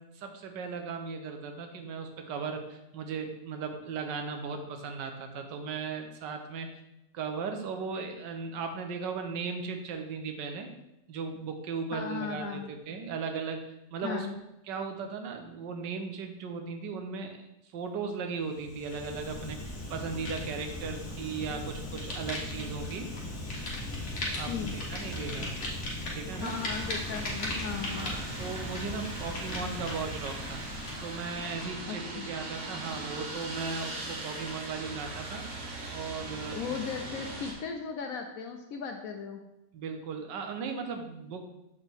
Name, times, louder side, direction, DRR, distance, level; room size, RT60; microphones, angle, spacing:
voice 1, 0.0-6.7 7.1-10.7 11.1-13.6 13.9-14.3 14.7-17.4 17.7-23.1 24.3-26.6 27.9-30.6 31.0-35.4 35.9-36.8 39.7-41.5, right 5 dB, 85° right, 5 dB, 1.4 m, -37 dB
voice 2, 11.9-12.7 14.0-14.3 24.5-24.7 26.4-28.1 31.9-32.2 36.5-39.4, left 6 dB, 70° left, 4 dB, 0.9 m, -37 dB
Fire, 18.5-31.9, left 1 dB, 45° left, 1.4 m, -37 dB
sound 1, 26.4-37.5, right 2 dB, 65° right, 1.6 m, -40 dB
7.0 x 4.3 x 3.4 m, 0.88 s
omnidirectional pair, 1.8 m